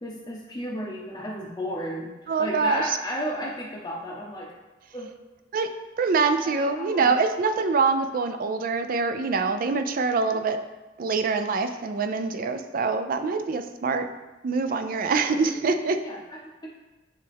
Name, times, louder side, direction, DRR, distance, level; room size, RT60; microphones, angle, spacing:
voice 1, 0.0-4.5 4.9-5.1 6.4-7.2 15.1-15.2 15.5-15.7 16.0-16.4, equal, 20° left, -3 dB, 0.7 m, -33 dB
voice 2, 2.3-3.0 5.5-5.7 6.0-10.6 11.0-14.1 14.4-16.0, right 4 dB, 50° right, 8 dB, 0.4 m, -24 dB
9.6 x 3.4 x 3.5 m, 1.1 s
head